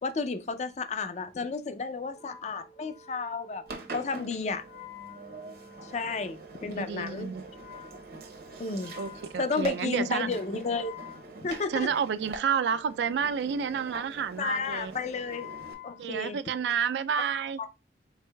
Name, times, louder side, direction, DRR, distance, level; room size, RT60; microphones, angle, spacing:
voice 1, 0.0-3.6 3.9-4.6 5.8-7.3 8.6-8.9 9.4-10.9 11.4-11.9 14.4-15.5 15.8-16.4 17.6-17.7, left 4 dB, 40° left, 0.4 m, -32 dB
Wind instrument woodwind instrument, 2.1-16.8, left 4 dB, 65° left, 2.3 m, -51 dB
Engine, 3.7-15.7, right 2 dB, 55° right, 0.8 m, -45 dB
voice 2, 6.7-7.4 9.0-10.3 11.7-14.9 16.0-17.6, right 7 dB, 75° right, 0.3 m, -30 dB
4.6 x 4.1 x 2.2 m
head